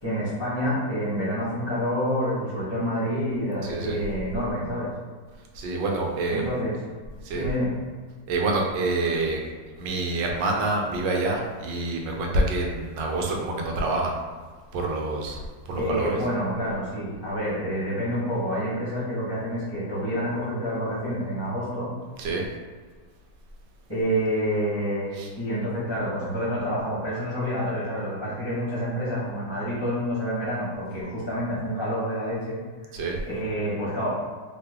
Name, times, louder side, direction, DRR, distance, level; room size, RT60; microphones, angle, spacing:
voice 1, 0.0-4.9 6.3-6.8 7.3-7.7 15.7-21.9 23.9-32.6 32.9-34.1, equal, 15° left, -9 dB, 0.8 m, -28 dB
voice 2, 3.6-4.0 5.6-6.4 7.2-7.4 8.3-9.4 9.8-14.1 14.7-15.4 15.7-16.2 22.2-22.4 25.2-25.3 32.9-33.2, right 2 dB, 80° right, 0 dB, 1.3 m, -27 dB
3.3 x 2.2 x 3.4 m, 1.5 s
omnidirectional pair, 2.0 m